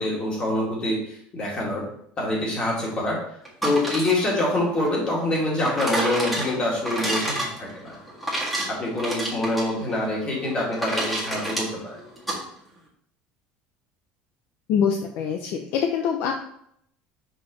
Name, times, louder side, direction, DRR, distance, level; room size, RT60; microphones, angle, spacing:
voice 1, 0.0-1.8 2.2-3.2 3.6-8.0 8.7-12.0, left 1 dB, 30° left, -3 dB, 2.2 m, -25 dB
sound 1, 3.5-12.4, right 1 dB, ahead, 1.6 m, -30 dB
voice 2, 14.7-16.3, left 7 dB, 60° left, 3 dB, 0.6 m, -24 dB
6.2 x 4.8 x 3.1 m, 0.69 s
cardioid pair, 155°, 4 cm